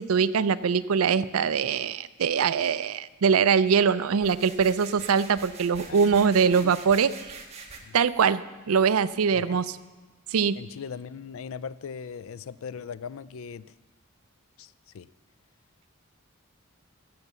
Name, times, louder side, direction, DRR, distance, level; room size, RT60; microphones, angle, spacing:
voice 1, 0.0-7.4 7.9-8.4 8.7-9.6 10.3-10.6, right 6 dB, 80° right, 16 dB, 0.5 m, -23 dB
sound 1, 4.2-7.8, right 4 dB, 30° right, 1.4 m, -44 dB
voice 2, 5.9-6.3 6.6-6.7 7.8-8.0 9.3-9.6 10.6-13.7 14.6-15.1, left 6 dB, 70° left, 17 dB, 0.4 m, -39 dB
14.5 x 7.2 x 6.8 m, 1.2 s
head